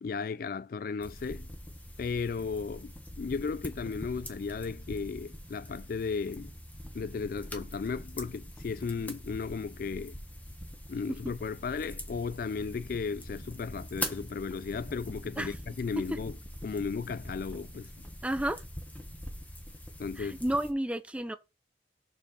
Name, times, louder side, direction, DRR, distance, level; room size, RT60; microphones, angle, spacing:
voice 1, 0.0-1.5 2.0-6.5 6.9-10.1 10.9-16.3 16.6-17.9 20.0-20.4, left 5 dB, 55° left, 0.3 m, -35 dB
sound 1, 1.0-20.7, left 1 dB, 10° left, 1.3 m, -43 dB
voice 2, 18.2-18.6 20.2-21.4, right 1 dB, 5° right, 0.5 m, -31 dB
6.9 x 4.9 x 5.5 m
head